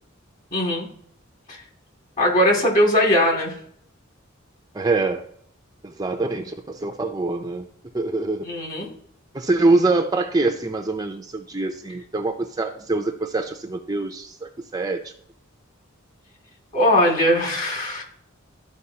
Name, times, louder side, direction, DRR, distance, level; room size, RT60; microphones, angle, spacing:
voice 1, 0.5-0.9 1.5-1.6 2.2-3.5 8.4-8.9 16.7-18.0, left 1 dB, 40° left, -1 dB, 2.4 m, -20 dB
voice 2, 4.7-5.2 5.8-7.7 7.9-8.4 9.3-15.1, right 3 dB, 20° right, 3 dB, 0.5 m, -24 dB
13.0 x 4.7 x 2.8 m, 0.67 s
head